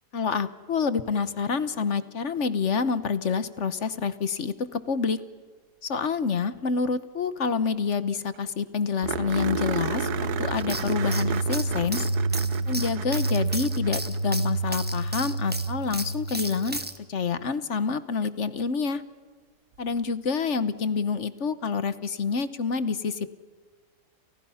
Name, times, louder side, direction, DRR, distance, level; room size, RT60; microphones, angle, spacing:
voice 1, 0.1-5.2 5.8-12.0 12.7-16.8 17.1-19.0 19.8-23.3, left 5 dB, 50° left, 14 dB, 1.2 m, -27 dB
sound 1, 7.7-7.8 7.9-8.0 8.3-8.4 9.0-14.5 16.8-16.9 19.7-19.8, right 9 dB, 70° right, 1.5 m, -33 dB
sound 2, 9.0-16.8, right 2 dB, 70° left, 5.6 m, -29 dB
sound 3, 10.6-17.0, right 1 dB, 5° right, 1.0 m, -35 dB
30.0 x 29.0 x 5.7 m, 1.4 s
omnidirectional pair, 1.8 m